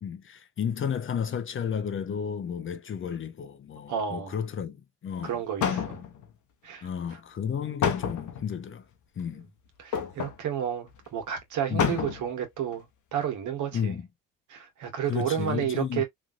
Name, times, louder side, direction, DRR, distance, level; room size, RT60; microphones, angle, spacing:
voice 1, 0.0-5.4 6.0-6.1 6.8-8.8 9.2-9.5 11.7-11.9 13.7-14.1 15.1-16.0, left 7 dB, 40° left, 0.6 m, -32 dB
voice 2, 3.9-4.3 5.2-6.0 6.6-6.9 9.8-12.8 13.1-13.9 14.5-16.0, right 9 dB, 70° right, 1.2 m, -31 dB
sound 1, 5.2-5.3 5.6-6.3 7.8-8.5 9.9-10.4 10.9-11.0 11.2-11.3 11.8-12.3 12.7-12.8, left 8 dB, 65° left, 0.9 m, -28 dB
3.1 x 2.5 x 2.4 m
supercardioid pair, 65°, 32 cm